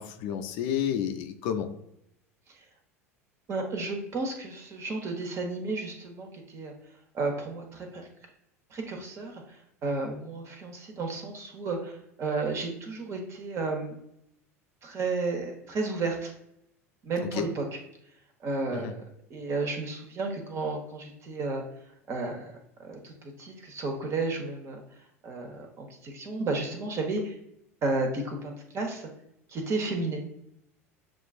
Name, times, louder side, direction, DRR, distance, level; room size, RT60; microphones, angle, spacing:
voice 1, 0.0-1.7 17.3-17.5 18.7-18.9, left 9 dB, 55° left, 5 dB, 0.5 m, -30 dB
voice 2, 3.5-6.7 7.1-8.1 8.7-9.4 9.8-14.0 14.8-16.3 17.0-17.8 18.4-19.0 19.3-21.6 22.1-22.5 22.8-24.8 25.2-27.4 27.8-29.1 29.5-30.2, right 3 dB, 35° right, 3 dB, 1.1 m, -32 dB
7.5 x 2.5 x 2.4 m, 0.77 s
figure-of-eight pair, 75°, 8 cm